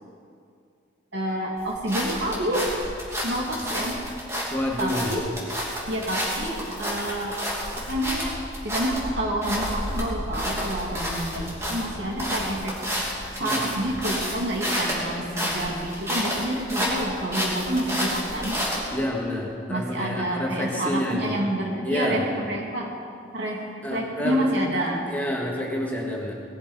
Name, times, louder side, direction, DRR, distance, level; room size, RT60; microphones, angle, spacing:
voice 1, 1.1-2.7 3.2-4.0 4.8-5.2 5.9-7.4 7.8-8.4 8.6-12.8 13.3-18.6 19.7-22.9 23.3-25.1, right 1 dB, 65° right, -1 dB, 2.7 m, -28 dB
sound 1, 1.6-19.0, equal, 15° right, 3.0 m, -30 dB
voice 2, 4.5-5.1 13.4-13.7 18.9-21.3 21.8-22.2 23.8-26.3, left 1 dB, 10° left, -2 dB, 1.8 m, -29 dB
19.0 x 13.0 x 5.5 m, 2.4 s
head